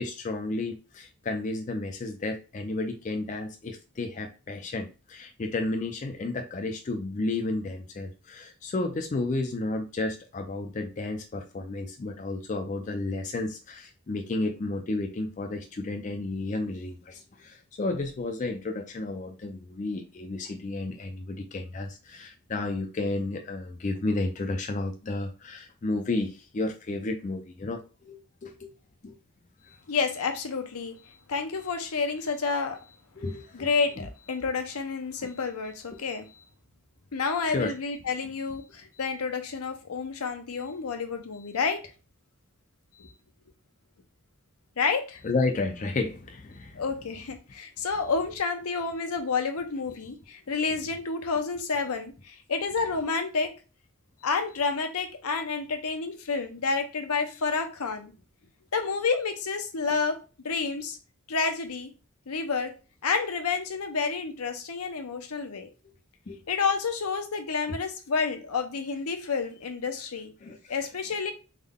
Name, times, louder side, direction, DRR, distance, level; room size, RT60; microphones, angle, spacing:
voice 1, 0.0-28.7 29.0-29.2 33.2-33.7 34.0-34.1 35.2-35.3 35.9-36.0 37.4-37.7 45.2-46.8 66.3-66.4 70.4-70.9, left 2 dB, 35° left, 0.4 m, -32 dB
voice 2, 29.9-33.0 33.5-36.4 37.1-41.8 43.0-43.1 44.8-45.2 46.8-53.5 54.2-58.1 58.7-60.2 60.4-61.0 61.3-61.9 62.3-62.7 63.0-65.7 66.5-70.3 70.7-71.3, left 4 dB, 85° left, 0.7 m, -29 dB
3.6 x 2.1 x 3.5 m
head